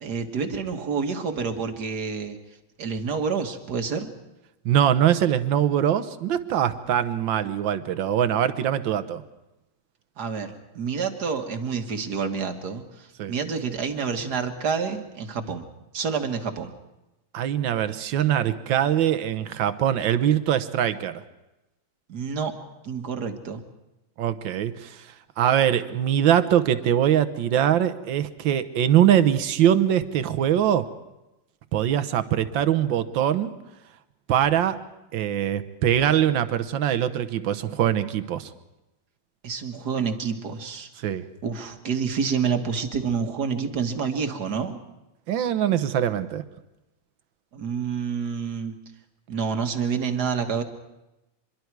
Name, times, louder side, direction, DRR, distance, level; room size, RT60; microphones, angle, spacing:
voice 1, 0.0-2.4 2.8-4.1 10.2-15.6 15.9-16.7 22.1-22.5 22.8-23.6 39.4-40.9 41.4-44.8 47.5-48.8 49.3-50.6, right 6 dB, 60° right, 6 dB, 2.0 m, -28 dB
voice 2, 4.7-9.2 13.2-13.3 17.3-21.2 24.2-25.1 25.4-30.9 31.7-33.5 34.3-34.8 35.1-38.5 41.0-41.2 45.3-46.4, right 10 dB, 80° right, 11 dB, 1.7 m, -22 dB
25.5 x 22.5 x 4.7 m, 0.96 s
omnidirectional pair, 2.1 m